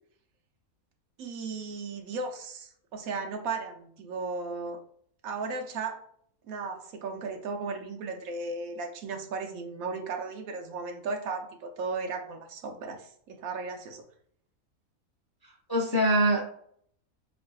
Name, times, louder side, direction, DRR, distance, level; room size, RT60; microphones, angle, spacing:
voice 1, 1.2-4.8 5.2-6.0 6.5-14.0, right 4 dB, 75° right, 3 dB, 1.1 m, -35 dB
voice 2, 15.4-16.4, right 1 dB, 30° left, -1 dB, 0.4 m, -24 dB
7.4 x 2.5 x 2.3 m, 0.63 s
omnidirectional pair, 1.5 m